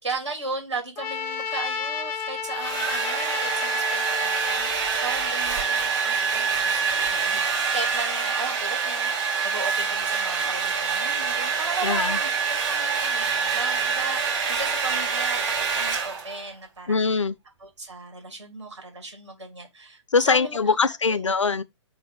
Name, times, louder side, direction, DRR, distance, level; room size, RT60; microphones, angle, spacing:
voice 1, 0.0-9.1 9.4-15.4 15.7-17.0 17.6-20.7 21.1-21.3, right 3 dB, 70° right, 2.5 m, -36 dB
Trumpet, 1.0-5.4, left 7 dB, 15° left, 0.4 m, -32 dB
Domestic sounds home sounds, 2.2-16.5, right 5 dB, 40° right, 2.7 m, -26 dB
voice 2, 11.8-12.2 16.9-17.4 20.1-21.6, left 4 dB, 80° left, 0.4 m, -22 dB
4.0 x 2.5 x 4.4 m
figure-of-eight pair, 125°, 15 cm